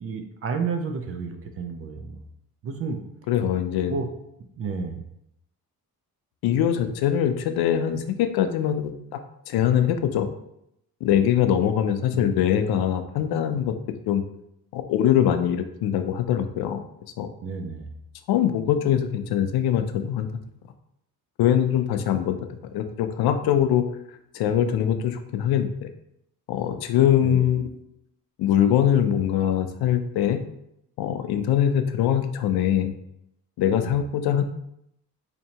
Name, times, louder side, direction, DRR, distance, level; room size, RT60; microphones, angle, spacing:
voice 1, 0.0-2.2 2.6-3.0 3.9-4.1 4.6-5.0 12.1-12.4 17.4-17.9 27.2-27.5 33.8-33.9, right 5 dB, 40° right, 6 dB, 0.4 m, -31 dB
voice 2, 3.3-4.0 6.4-8.9 9.5-10.3 11.0-13.7 14.1-14.2 14.7-16.8 17.2-17.3 18.3-20.3 21.4-22.4 22.7-23.8 24.3-25.9 26.5-27.7 28.4-30.4 31.0-32.9 33.6-34.4, left 10 dB, 85° left, 8 dB, 0.5 m, -22 dB
4.4 x 2.6 x 2.8 m, 0.78 s
cardioid pair, 160°, 37 cm